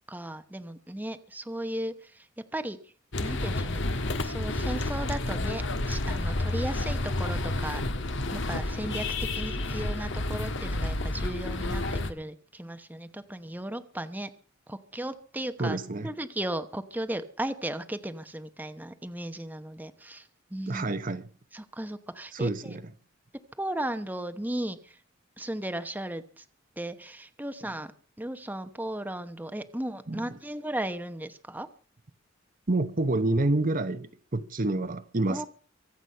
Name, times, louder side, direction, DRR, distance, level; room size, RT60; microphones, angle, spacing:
voice 1, 0.1-2.3 2.5-2.8 3.2-3.8 4.2-7.8 8.3-14.3 14.7-15.8 16.0-20.9 21.5-22.8 23.6-25.0 25.4-26.4 26.8-27.9 28.2-31.7 35.3-35.5, right 1 dB, 10° right, 0.9 m, -36 dB
sound 1, 3.1-12.1, left 2 dB, 65° left, 1.4 m, -30 dB
voice 2, 15.6-16.1 20.7-21.3 22.3-22.9 30.1-30.4 32.7-35.5, right 2 dB, 45° right, 0.9 m, -28 dB
24.0 x 8.2 x 5.6 m
head